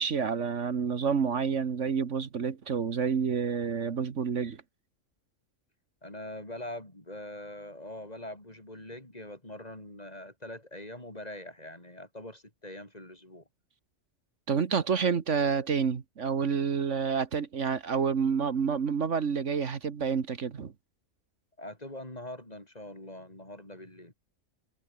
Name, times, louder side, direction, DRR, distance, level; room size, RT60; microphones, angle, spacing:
voice 1, 0.0-4.6 14.5-20.7, right 6 dB, 70° right, 1.7 m, -29 dB
voice 2, 6.0-13.4 21.6-24.1, left 1 dB, 30° left, 4.9 m, -43 dB
omnidirectional pair, 1.3 m